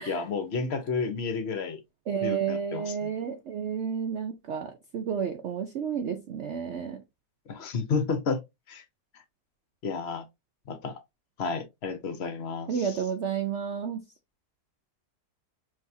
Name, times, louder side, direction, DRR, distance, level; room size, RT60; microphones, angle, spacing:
voice 1, 0.0-1.8 2.2-3.1 7.5-8.4 8.7-8.8 9.8-10.2 10.7-11.0 11.4-13.0, left 4 dB, 50° left, 0.8 m, -31 dB
voice 2, 2.1-7.0 12.7-14.0, right 7 dB, 85° right, 0.6 m, -31 dB
5.6 x 2.8 x 2.7 m
omnidirectional pair, 1.9 m